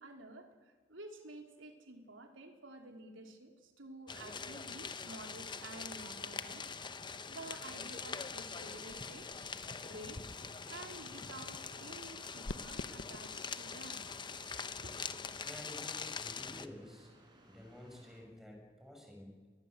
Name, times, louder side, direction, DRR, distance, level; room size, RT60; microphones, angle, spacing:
voice 1, 0.0-6.7 7.3-10.2 10.7-14.0 14.5-14.9, right 2 dB, 90° right, 4 dB, 3.4 m, -51 dB
sound 1, 4.1-16.7, left 5 dB, 25° left, 0.9 m, -44 dB
sound 2, 8.2-15.9, left 2 dB, 75° left, 1.0 m, -52 dB
sound 3, 10.2-18.2, right 1 dB, 25° right, 5.0 m, -63 dB
voice 2, 15.4-17.1 17.5-19.5, left 1 dB, ahead, 0 dB, 6.9 m, -51 dB
24.5 x 21.0 x 8.2 m, 1.5 s
head